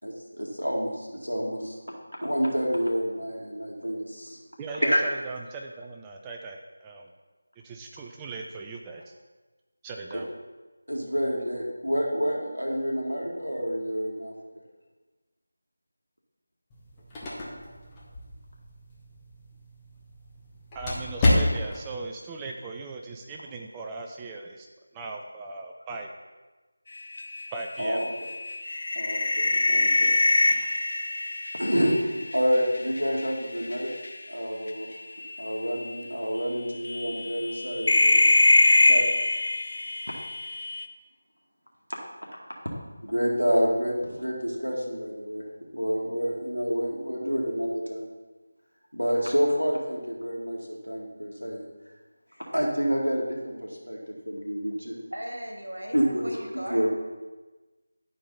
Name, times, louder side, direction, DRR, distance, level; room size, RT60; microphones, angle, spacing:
voice 1, 0.0-1.7 2.2-4.4 4.9-5.0 10.9-14.3 27.8-28.1 29.0-30.1 31.5-33.9 34.3-34.9 35.4-38.4 38.9-39.0 43.0-45.4 45.7-48.1 48.9-51.6 52.5-54.0 54.3-55.0 55.9-56.4 56.7-56.9, equal, 90° left, -2 dB, 2.0 m, -28 dB
voice 2, 4.6-7.1 7.6-9.1 9.8-10.3 20.7-24.7 24.9-26.1 27.5-28.1, right 3 dB, 10° right, 1 dB, 0.4 m, -38 dB
sound 1, 16.7-21.9, left 1 dB, 15° left, 0.8 m, -30 dB
sound 2, 27.0-33.3 33.6-34.1 35.2-35.4 35.8-35.9 36.8-40.9, left 2 dB, 45° left, 0.5 m, -24 dB
voice 3, 55.1-56.9, equal, 70° right, 1 dB, 1.7 m, -37 dB
11.0 x 4.6 x 4.0 m, 1.2 s
figure-of-eight pair, 165°, 0 cm